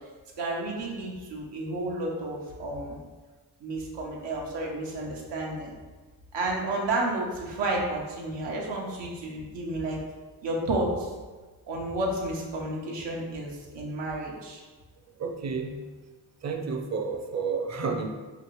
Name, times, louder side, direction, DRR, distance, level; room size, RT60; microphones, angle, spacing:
voice 1, 0.4-3.0 3.6-5.7 6.3-10.0 10.4-11.1 11.7-14.6, right 2 dB, 85° right, -2 dB, 0.9 m, -31 dB
voice 2, 15.2-15.8 16.4-18.1, right 5 dB, 40° right, 4 dB, 0.6 m, -30 dB
4.9 x 2.5 x 3.1 m, 1.3 s
cardioid pair, 65°, 42 cm